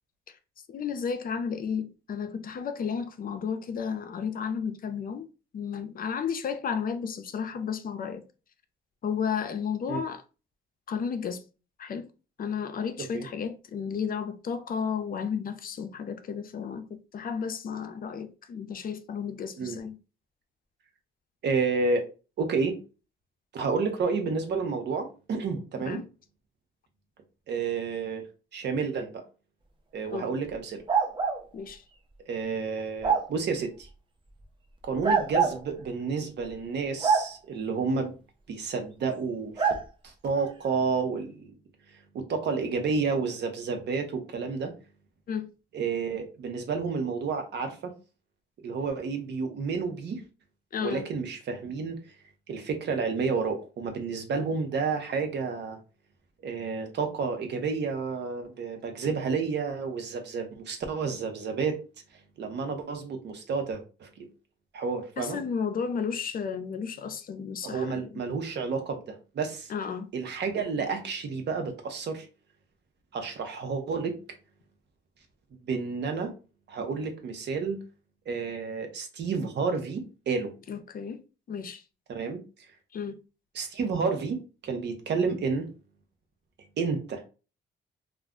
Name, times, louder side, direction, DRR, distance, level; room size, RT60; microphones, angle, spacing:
voice 1, 0.7-5.3 5.5-8.2 9.0-10.2 10.9-11.4 11.8-12.1 12.4-16.8 17.1-20.0 25.8-26.0 30.1-30.3 31.5-31.8 45.3-45.5 50.7-51.1 65.2-68.2 69.7-70.1 80.7-81.2 81.5-81.8 82.9-83.2, left 6 dB, 45° left, 0.5 m, -33 dB
voice 2, 21.4-22.0 22.4-22.8 23.5-26.0 27.5-28.2 28.5-29.2 29.9-30.8 32.3-33.9 34.8-38.1 38.5-39.8 40.0-41.5 42.1-44.7 45.7-47.9 48.6-50.2 50.8-52.0 52.5-55.8 56.4-61.8 62.4-64.3 64.7-65.4 67.6-69.7 70.1-72.3 73.1-74.1 75.6-76.3 76.7-77.8 78.3-80.5 82.1-82.4 83.5-85.7 86.8-87.2, right 5 dB, 60° right, 0.8 m, -30 dB
sound 1, 30.9-31.4 33.0-33.3 35.0-35.6 37.0-37.3 39.6-39.8, right 6 dB, 25° right, 0.6 m, -24 dB
2.4 x 2.2 x 3.7 m
cardioid pair, 90°, 20 cm